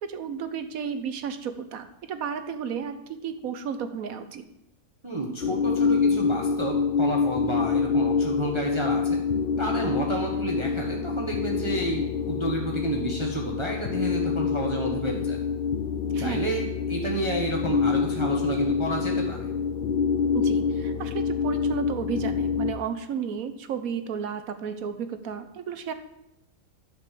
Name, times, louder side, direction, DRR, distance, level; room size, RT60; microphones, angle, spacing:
voice 1, 0.0-4.4 16.1-16.5 20.3-25.9, right 7 dB, 75° right, 10 dB, 1.3 m, -33 dB
voice 2, 5.0-9.2 9.6-15.4 16.2-16.6 16.9-19.5, right 2 dB, 20° right, -1 dB, 1.2 m, -30 dB
sound 1, 5.4-22.7, left 6 dB, 60° left, 0.6 m, -26 dB
11.0 x 5.3 x 7.5 m, 0.87 s
omnidirectional pair, 1.5 m